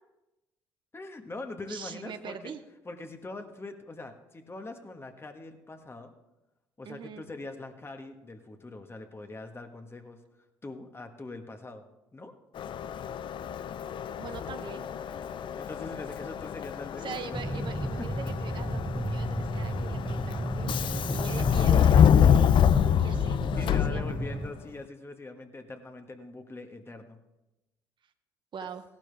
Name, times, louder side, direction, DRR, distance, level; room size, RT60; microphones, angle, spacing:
voice 1, 0.9-2.5 2.8-6.1 6.8-10.2 10.6-11.8 12.1-12.3 15.6-17.6 18.0-18.1 23.6-27.2, left 2 dB, 25° left, 6 dB, 1.6 m, -42 dB
voice 2, 1.7-2.6 6.8-7.2 14.2-14.9 17.0-22.5 23.0-24.2 28.5-28.8, right 7 dB, 50° right, 9 dB, 0.9 m, -42 dB
Subway metro underground, 12.6-24.5, left 9 dB, 50° left, 0.5 m, -26 dB
sound 1, 17.3-24.5, right 1 dB, 5° right, 0.9 m, -33 dB
17.0 x 12.0 x 3.5 m, 0.98 s
hypercardioid pair, 55°, 10 cm